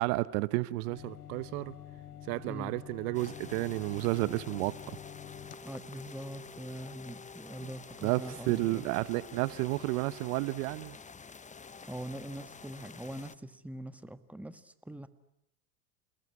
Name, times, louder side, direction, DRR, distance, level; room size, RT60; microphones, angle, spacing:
voice 1, 0.0-1.8 2.3-4.7 8.0-11.0, right 20 dB, 65° right, 1.1 m, -31 dB
sound 1, 0.9-5.5, left 11 dB, 70° left, 3.1 m, -48 dB
sound 2, 3.1-13.4, left 5 dB, 15° left, 1.1 m, -49 dB
voice 2, 5.6-8.9 11.8-15.1, right 1 dB, 5° right, 1.7 m, -43 dB
29.0 x 20.5 x 9.8 m
hypercardioid pair, 85°, 46 cm